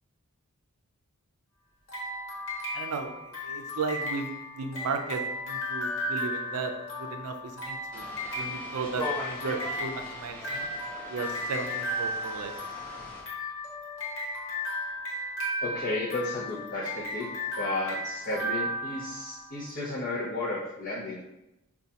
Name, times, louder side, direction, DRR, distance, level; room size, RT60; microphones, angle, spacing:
sound 1, 1.9-19.6, left 1 dB, 60° left, 1.1 m, -35 dB
voice 1, 2.7-8.1 8.3-10.7 11.1-12.5, right 4 dB, 75° right, 5 dB, 0.4 m, -35 dB
sound 2, 7.9-13.2, equal, 20° left, 1.1 m, -40 dB
voice 2, 15.6-17.3 17.6-21.3, left 2 dB, 40° left, -7 dB, 0.5 m, -33 dB
5.0 x 2.3 x 2.8 m, 0.91 s
head